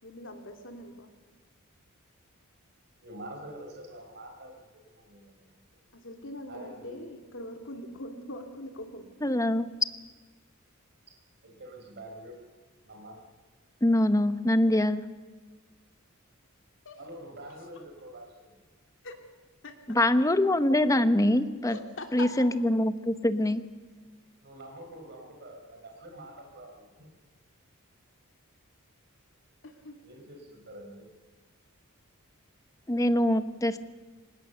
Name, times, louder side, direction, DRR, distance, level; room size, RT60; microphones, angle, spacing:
voice 1, 0.0-1.1 5.9-9.1 16.8-17.0 17.7-17.8 19.0-19.1 19.6-19.7 21.7-22.3 29.6-30.0, left 1 dB, 60° left, 4 dB, 2.9 m, -42 dB
voice 2, 3.0-5.6 6.5-7.0 11.4-12.4 12.8-13.2 17.0-18.5 24.4-27.1 30.0-31.1, right 1 dB, 55° right, 2 dB, 4.3 m, -46 dB
voice 3, 9.2-9.7 13.8-15.0 19.9-21.8 22.1-23.6 32.9-33.8, left 1 dB, 15° left, 11 dB, 0.9 m, -24 dB
24.0 x 20.5 x 6.8 m, 1.4 s
head